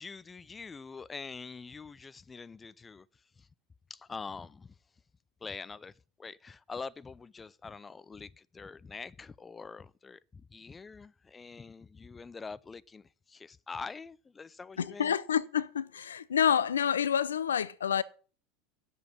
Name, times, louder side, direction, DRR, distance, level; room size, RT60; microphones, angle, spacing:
voice 1, 0.0-3.1 3.4-3.5 3.9-4.7 5.4-5.9 6.2-15.1, left 4 dB, 20° left, 0.4 m, -45 dB
voice 2, 14.8-18.0, left 8 dB, 80° left, 0.5 m, -28 dB
9.3 x 7.7 x 6.1 m
hypercardioid pair, 80°, 0 cm